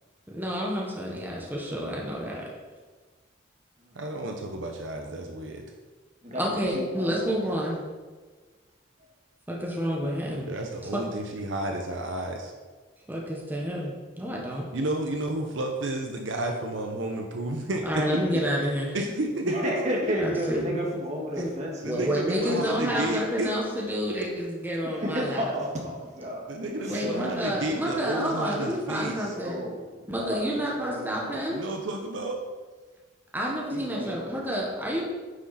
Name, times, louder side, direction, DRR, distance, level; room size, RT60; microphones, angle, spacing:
voice 1, 0.3-2.5 6.4-7.8 9.5-10.5 10.9-11.0 13.1-14.6 17.8-18.9 20.2-20.8 21.4-21.5 21.8-25.5 26.9-29.6 30.1-31.6 33.3-35.1, equal, 10° right, -3 dB, 1.3 m, -29 dB
voice 2, 3.9-5.6 10.5-12.5 14.7-18.0 18.9-20.1 21.3-21.4 21.8-23.6 26.5-29.3 31.5-32.4, right 1 dB, 65° right, 3 dB, 0.9 m, -31 dB
voice 3, 6.2-7.3 10.0-10.2 14.2-14.5 19.4-22.8 24.8-28.3 29.2-29.8 30.1-31.4 33.7-34.8, equal, 35° right, -1 dB, 1.8 m, -33 dB
9.6 x 6.3 x 4.2 m, 1.3 s
head